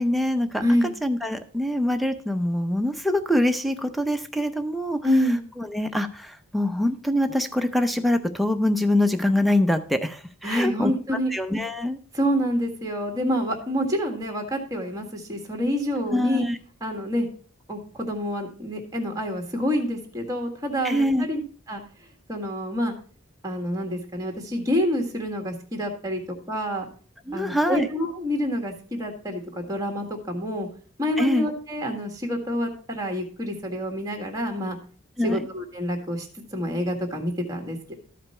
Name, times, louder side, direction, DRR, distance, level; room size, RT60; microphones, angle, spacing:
voice 1, 0.0-5.0 5.6-10.9 11.3-12.0 16.1-16.6 20.8-21.2 27.3-27.9 31.2-31.5 35.2-35.5, left 1 dB, ahead, 6 dB, 0.6 m, -24 dB
voice 2, 5.0-5.4 10.4-11.3 12.1-16.5 16.8-17.3 17.7-21.4 21.7-21.8 22.3-22.9 23.4-26.9 27.3-30.7 31.0-34.8 35.2-36.3 36.5-37.9, equal, 15° right, 2 dB, 1.6 m, -27 dB
13.0 x 5.0 x 4.3 m, 0.42 s
head